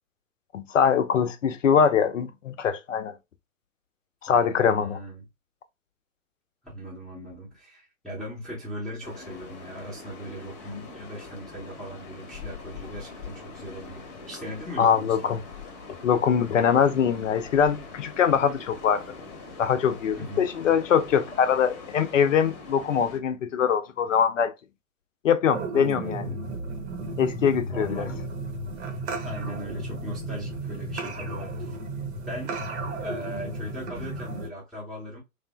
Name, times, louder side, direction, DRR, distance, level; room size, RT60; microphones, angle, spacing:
voice 1, 0.5-3.1 4.2-5.0 14.8-15.4 16.0-19.0 19.6-24.5 25.2-26.3 27.2-28.1, left 7 dB, 60° left, 0.7 m, -23 dB
voice 2, 4.3-5.2 6.6-15.3 20.2-20.4 25.9-26.4 27.6-28.2 29.2-31.8 32.3-32.6 33.0-35.2, equal, ahead, 0.7 m, -39 dB
sound 1, 9.0-23.2, left 4 dB, 30° left, 0.9 m, -43 dB
sound 2, 25.5-34.5, right 2 dB, 50° right, 0.8 m, -34 dB
3.2 x 2.0 x 2.8 m
figure-of-eight pair, 110°, 43 cm